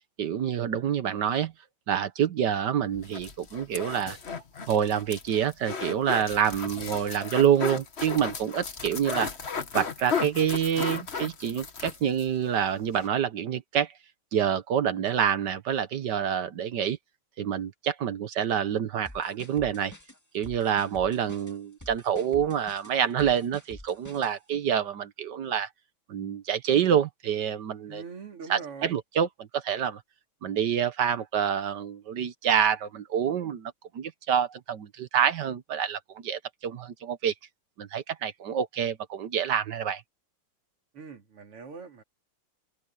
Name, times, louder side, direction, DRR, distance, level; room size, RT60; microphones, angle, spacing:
voice 1, 0.0-1.5 1.9-4.2 4.7-9.3 9.7-13.9 14.3-17.0 17.4-19.9 20.3-25.7 26.1-28.0 28.5-30.0 30.4-37.3 37.8-40.0, right 8 dB, 60° right, 1.4 m, -27 dB
sound 1, 2.9-12.3 12.6-12.7 12.9-13.1, left 5 dB, 35° left, 1.3 m, -35 dB
sound 2, 19.1-24.3, left 1 dB, 10° left, 1.8 m, -47 dB
voice 2, 27.9-29.0 40.9-42.0, right 5 dB, 85° right, 4.0 m, -42 dB
open air
omnidirectional pair, 2.4 m